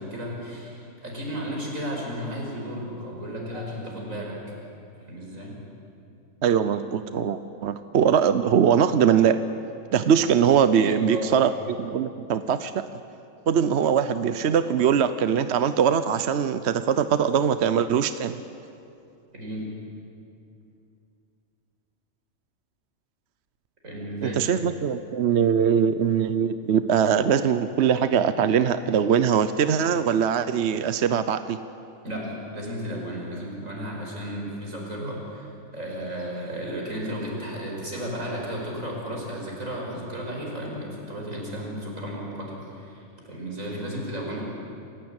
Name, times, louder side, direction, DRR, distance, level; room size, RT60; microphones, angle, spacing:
voice 1, 0.0-4.4 5.0-5.6 10.7-11.4 19.3-19.7 23.8-24.4 32.0-44.4, equal, 85° right, -2 dB, 6.0 m, -34 dB
voice 2, 6.4-9.4 9.9-12.8 13.5-18.4 24.2-31.6, right 8 dB, 60° right, 11 dB, 0.9 m, -22 dB
27.5 x 16.0 x 8.9 m, 2.6 s
omnidirectional pair, 1.4 m